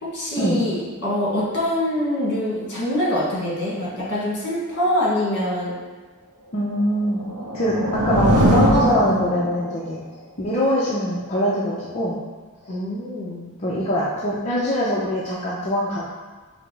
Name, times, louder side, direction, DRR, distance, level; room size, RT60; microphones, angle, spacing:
voice 1, 0.0-5.7 12.7-13.5, left 1 dB, 50° left, -6 dB, 1.4 m, -24 dB
voice 2, 6.5-7.2 7.5-10.0 10.4-12.2 12.6-12.7 13.6-16.0, equal, 30° left, -7 dB, 0.5 m, -23 dB
sound 1, 7.0-9.9, equal, 85° right, 0.7 m, -20 dB
4.9 x 2.0 x 4.5 m, 1.3 s
head